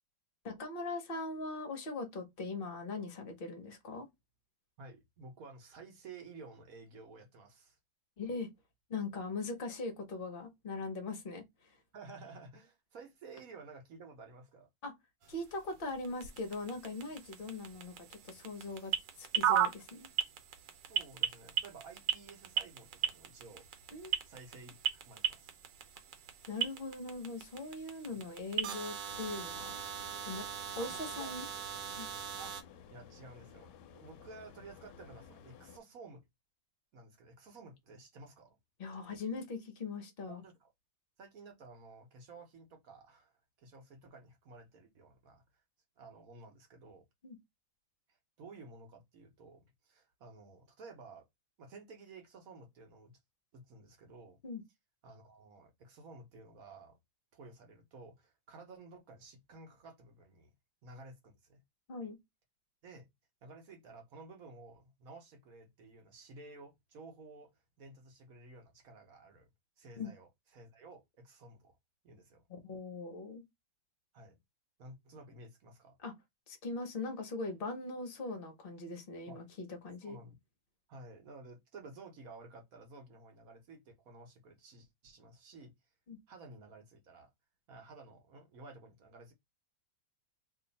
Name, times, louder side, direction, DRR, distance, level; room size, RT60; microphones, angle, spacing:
voice 1, 0.4-4.1 8.2-8.5 8.9-11.7 14.8-14.9 15.3-20.1 23.9-24.2 26.5-29.8 30.3-30.5 30.8-31.5 31.9-32.1 38.8-40.4 47.2-47.4 54.4-54.6 61.9-62.2 70.0-70.1 72.5-73.4 76.0-76.1 76.5-80.2 86.1-86.2, left 3 dB, 45° left, 0.7 m, -41 dB
voice 2, 4.8-7.8 11.9-14.7 20.8-24.8 25.0-25.6 28.1-28.2 30.8-31.4 32.3-32.6 32.9-36.2 36.9-38.6 40.3-40.7 41.2-45.4 46.0-47.0 48.4-51.3 51.6-53.1 53.5-54.4 55.0-57.0 57.3-60.5 60.8-61.6 62.8-63.1 63.4-67.5 67.8-69.5 69.8-71.8 72.0-72.5 74.1-74.4 74.8-75.9 79.3-79.4 80.0-80.4 80.9-85.7 86.3-87.3 87.7-89.3, right 3 dB, 55° right, 1.2 m, -53 dB
sound 1, 15.2-32.6, right 9 dB, 70° right, 1.3 m, -38 dB
sound 2, 29.1-35.8, left 7 dB, 75° left, 1.1 m, -55 dB
3.0 x 2.6 x 4.0 m
omnidirectional pair, 2.1 m